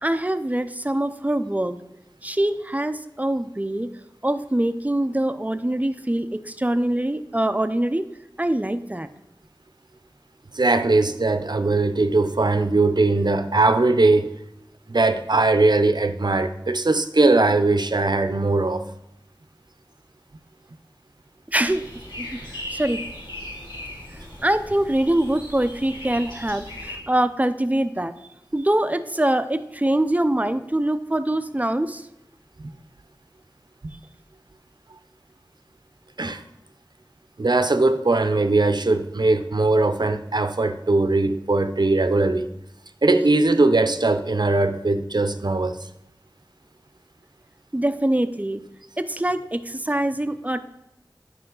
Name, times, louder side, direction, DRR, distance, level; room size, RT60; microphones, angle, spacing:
voice 1, 0.0-1.8 2.2-3.9 4.2-8.1 8.4-9.1 21.5-21.9 22.2-22.4 22.7-23.0 24.4-28.1 28.5-32.1 47.7-48.6 49.0-50.6, right 1 dB, 20° right, 0.6 m, -24 dB
voice 2, 10.5-14.3 14.9-18.9 32.6-32.7 36.2-36.4 37.4-42.5 43.0-45.8, right 2 dB, 60° right, 0.6 m, -20 dB
sound 1, 21.6-27.0, left 1 dB, 85° left, 2.7 m, -37 dB
10.0 x 5.8 x 3.8 m
wide cardioid pair, 45°, 8 cm